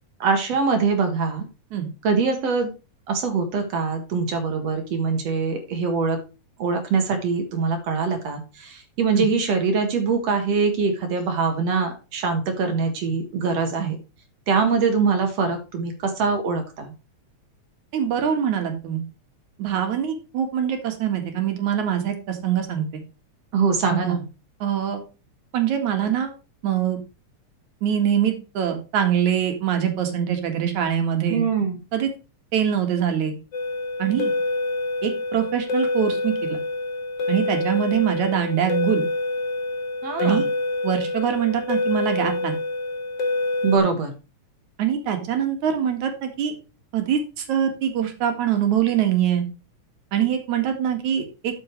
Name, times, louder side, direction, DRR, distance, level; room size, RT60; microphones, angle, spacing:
voice 1, 0.2-1.4 2.0-2.7 3.1-6.2 6.6-14.0 14.5-16.9 23.5-24.2 31.3-31.8 40.0-40.5 43.6-44.1, right 4 dB, 60° right, 6 dB, 2.6 m, -23 dB
voice 2, 17.9-19.0 19.6-23.0 23.9-24.2 24.6-25.0 25.5-26.3 26.6-27.0 27.8-31.4 31.9-32.1 32.5-33.3 34.0-34.3 35.0-36.6 37.3-39.0 40.2-40.5 40.8-42.6 44.8-46.5 46.9-49.5 50.1-51.6, right 9 dB, 80° right, 5 dB, 3.2 m, -23 dB
sound 1, 33.5-43.8, left 2 dB, 55° left, 2.9 m, -26 dB
12.5 x 6.6 x 3.1 m, 0.30 s
omnidirectional pair, 3.3 m